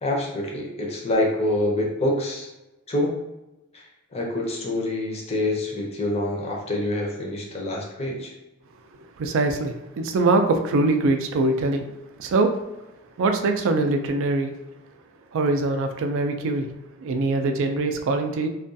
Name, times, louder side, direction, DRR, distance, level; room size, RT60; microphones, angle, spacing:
voice 1, 0.0-2.5 2.9-3.2 3.7-8.3, left 1 dB, 30° left, -2 dB, 0.5 m, -26 dB
voice 2, 9.2-11.9 12.2-12.5 13.2-14.5 15.3-16.7 17.0-18.5, right 2 dB, 60° right, 5 dB, 0.3 m, -23 dB
2.3 x 2.2 x 2.6 m, 0.99 s
head